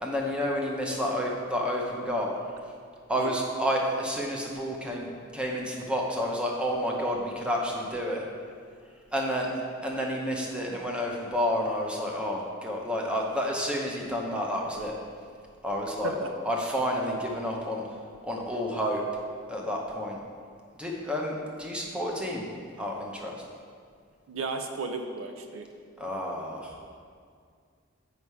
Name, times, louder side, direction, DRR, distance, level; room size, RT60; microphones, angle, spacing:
voice 1, 0.0-2.4 3.1-8.2 9.1-9.5 9.8-14.9 15.6-16.2 16.4-17.8 18.2-19.0 19.5-20.2 20.8-22.5 22.8-23.4 26.0-26.8, equal, 5° right, -1 dB, 0.8 m, -30 dB
voice 2, 24.3-25.7, right 3 dB, 70° right, 5 dB, 0.5 m, -34 dB
7.3 x 5.4 x 4.7 m, 2.1 s
head